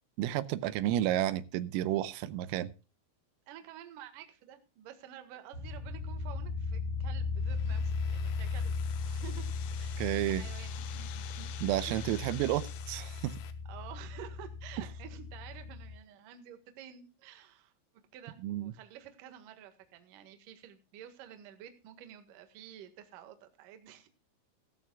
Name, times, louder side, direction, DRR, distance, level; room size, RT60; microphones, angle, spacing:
voice 1, 0.2-2.7 10.0-10.4 11.6-13.4 18.4-18.7, right 13 dB, 90° right, 15 dB, 3.5 m, -31 dB
voice 2, 3.5-8.8 9.1-9.4 9.7-11.6 11.9-12.2 13.4-17.7 18.1-24.1, right 10 dB, 60° right, 7 dB, 2.4 m, -50 dB
sound 1, 5.5-15.9, left 4 dB, 35° left, 2.1 m, -37 dB
sound 2, 7.4-13.5, left 12 dB, 85° left, 3.7 m, -49 dB
17.0 x 13.0 x 2.3 m, 0.32 s
omnidirectional pair, 5.9 m